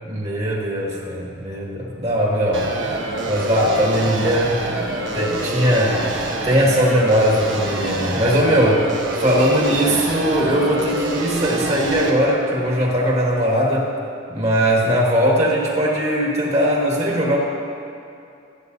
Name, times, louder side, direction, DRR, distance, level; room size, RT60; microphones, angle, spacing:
voice 1, 0.0-2.7 3.2-4.6 5.1-6.0 6.4-8.9 9.2-13.9 14.3-17.4, equal, 35° right, -3 dB, 1.8 m, -19 dB
sound 1, 2.5-12.1, right 2 dB, 80° right, 1.2 m, -26 dB
17.0 x 8.7 x 2.7 m, 2.6 s
head